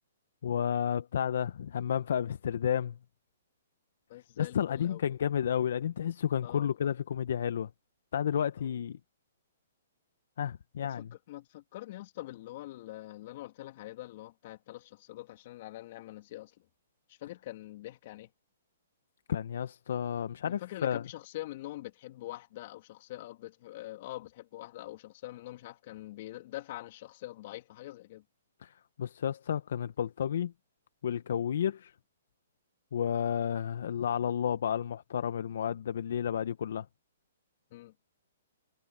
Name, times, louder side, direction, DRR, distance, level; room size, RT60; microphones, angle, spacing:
voice 1, 0.4-3.0 4.4-7.7 8.1-9.0 10.4-11.1 19.3-21.0 28.6-30.5 31.0-31.9 32.9-36.9, left 9 dB, 65° left, 1.1 m, -31 dB
voice 2, 4.1-5.0 6.4-6.9 8.6-8.7 10.8-16.5 17.1-18.3 20.4-28.2 37.7-37.9, left 16 dB, 50° left, 2.9 m, -44 dB
hypercardioid pair, 135°, 0 cm